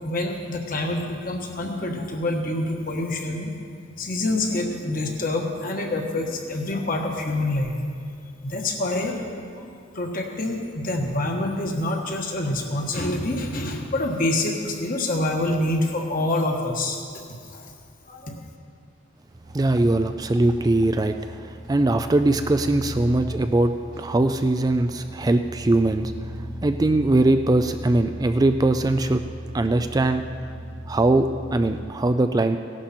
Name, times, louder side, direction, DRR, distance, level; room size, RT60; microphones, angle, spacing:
voice 1, 0.0-3.5 4.0-7.7 8.4-17.0 17.5-17.7 18.1-18.4, left 2 dB, 45° left, 2 dB, 1.4 m, -26 dB
sound 1, 19.3-31.9, equal, 50° right, 1.4 m, -37 dB
voice 2, 19.5-29.2 29.5-30.2 30.9-32.6, right 2 dB, 20° right, 8 dB, 0.3 m, -21 dB
16.5 x 11.5 x 4.3 m, 2.3 s
head